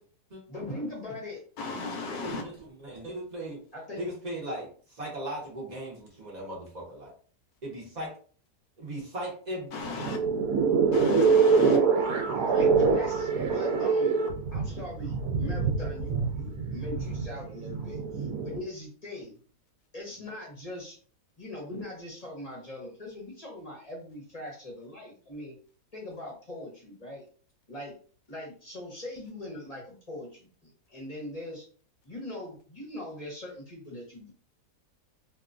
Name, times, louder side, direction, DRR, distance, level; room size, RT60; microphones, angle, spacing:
voice 1, 0.5-1.4 3.7-4.0 10.9-11.0 12.5-14.1 14.5-19.3 19.9-21.0 21.4-25.5 25.9-27.2 27.7-28.0 28.3-31.6 32.0-34.3, left 1 dB, 35° left, 0.6 m, -41 dB
voice 2, 1.6-2.4 9.7-10.2 10.9-11.8, left 4 dB, 70° left, 1.0 m, -35 dB
voice 3, 2.2-3.6 4.0-4.7 5.0-7.1 7.6-8.1 8.8-9.7, right 1 dB, 45° right, 0.5 m, -37 dB
sound 1, 9.8-18.6, right 5 dB, 70° right, 1.0 m, -25 dB
2.9 x 2.3 x 2.4 m
omnidirectional pair, 1.8 m